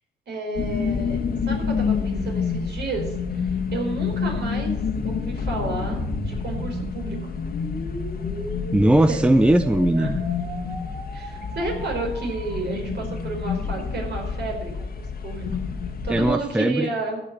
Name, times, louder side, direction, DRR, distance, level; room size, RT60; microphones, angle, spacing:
voice 1, 0.3-1.2 1.5-7.3 9.1-9.2 10.0-10.1 11.1-15.4 16.0-17.2, right 3 dB, 60° right, 1 dB, 4.7 m, -31 dB
sound 1, 0.6-16.3, left 5 dB, 50° left, 1.6 m, -28 dB
sound 2, 5.7-12.5, right 2 dB, 75° right, 6.0 m, -37 dB
voice 2, 8.7-10.2 16.1-16.9, right 1 dB, 5° right, 10 dB, 0.6 m, -19 dB
15.5 x 5.7 x 7.7 m, 0.86 s
cardioid pair, 90°, 20 cm